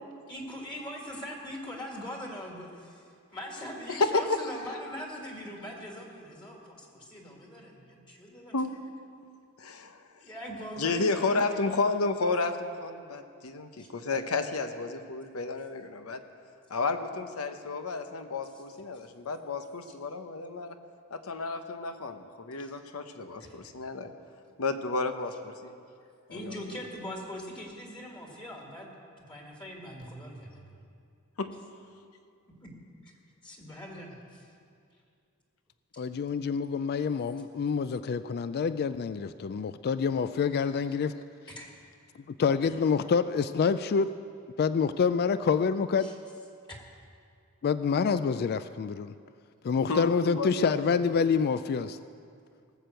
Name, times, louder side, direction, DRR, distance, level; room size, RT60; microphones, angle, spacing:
voice 1, 0.3-8.6 10.2-11.6 13.8-13.9 22.6-22.8 23.4-23.5 26.3-28.9 29.3-30.8 32.6-32.7 33.0-33.1 33.4-34.5 40.8-40.9 41.5-41.8 46.0-46.1 46.7-46.8, equal, 25° left, 0 dB, 1.9 m, -41 dB
voice 2, 3.9-4.4 8.5-8.7 9.6-10.0 10.8-16.2 16.7-20.8 21.1-24.1 24.6-25.7 26.3-26.5 31.4-31.5 49.9-51.3, left 3 dB, 85° left, 8 dB, 0.9 m, -31 dB
voice 3, 36.0-41.1 42.4-44.1 44.6-46.1 47.6-49.1 49.6-52.0, left 5 dB, 50° left, 12 dB, 0.3 m, -27 dB
18.5 x 6.8 x 7.7 m, 2.3 s
head